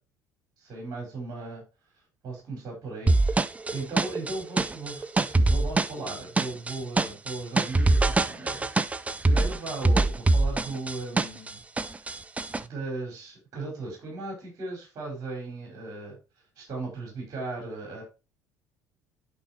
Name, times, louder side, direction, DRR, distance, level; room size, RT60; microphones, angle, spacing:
voice 1, 0.6-1.6 2.2-8.7 9.2-11.6 11.9-12.1 12.6-16.2 16.6-18.0, right 3 dB, 40° right, 0 dB, 5.2 m, -37 dB
sound 1, 3.1-11.5 11.8-12.6, right 2 dB, 15° right, 0.5 m, -23 dB
11.5 x 5.6 x 2.9 m, 0.29 s
figure-of-eight pair, 60°, 9 cm